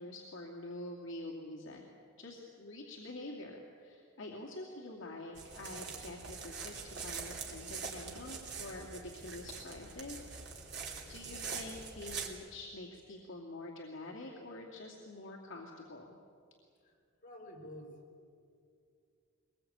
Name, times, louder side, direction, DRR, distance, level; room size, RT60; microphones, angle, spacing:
voice 1, 0.0-1.8 2.2-10.2 11.1-16.2, left 2 dB, 60° left, -2 dB, 2.5 m, -46 dB
sound 1, 5.3-12.3, right 5 dB, 55° right, 3.0 m, -44 dB
voice 2, 16.8-18.0, left 1 dB, 40° left, -1 dB, 4.6 m, -50 dB
23.0 x 20.5 x 8.8 m, 2.4 s
head